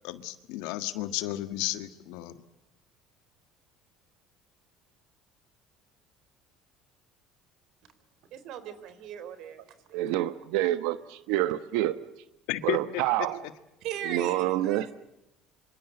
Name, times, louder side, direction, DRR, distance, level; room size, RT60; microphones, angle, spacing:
voice 1, 0.0-2.4 12.5-13.3, left 15 dB, 80° left, 11 dB, 1.6 m, -33 dB
voice 2, 8.3-10.1 13.8-14.9, right 9 dB, 65° right, 12 dB, 4.0 m, -39 dB
voice 3, 9.9-12.0 12.6-13.4 14.0-14.9, right 14 dB, 80° right, 13 dB, 1.1 m, -27 dB
26.0 x 25.5 x 8.0 m, 0.88 s
cardioid pair, 110°, 0 cm